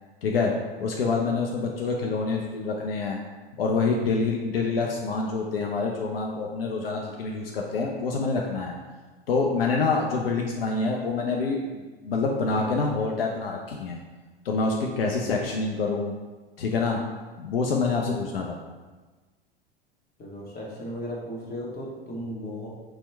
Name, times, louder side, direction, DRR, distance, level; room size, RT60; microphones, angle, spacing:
voice 1, 0.2-0.5 0.8-3.2 3.6-8.8 9.3-14.0 14.4-16.2 16.6-17.0 17.4-18.6, left 4 dB, 75° left, 0 dB, 0.5 m, -26 dB
voice 2, 20.2-22.7, equal, 30° left, -4 dB, 1.3 m, -35 dB
4.2 x 2.2 x 4.2 m, 1.3 s
figure-of-eight pair, 85°, 29 cm